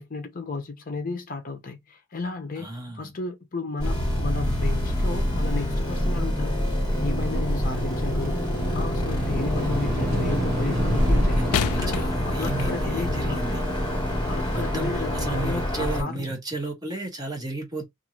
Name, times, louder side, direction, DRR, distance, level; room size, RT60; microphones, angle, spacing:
voice 1, 0.0-6.6 7.0-13.4 14.3-16.2, left 3 dB, 40° left, 0.6 m, -33 dB
voice 2, 2.6-3.1 11.4-13.6 14.5-17.8, right 2 dB, 20° right, 0.7 m, -33 dB
sound 1, 3.8-16.0, equal, 20° left, 1.2 m, -26 dB
sound 2, 5.7-7.7 8.1-14.7, equal, 50° right, 1.0 m, -30 dB
sound 3, 11.5-13.1 13.9-14.0, left 8 dB, 85° left, 0.3 m, -31 dB
2.6 x 2.4 x 3.0 m
head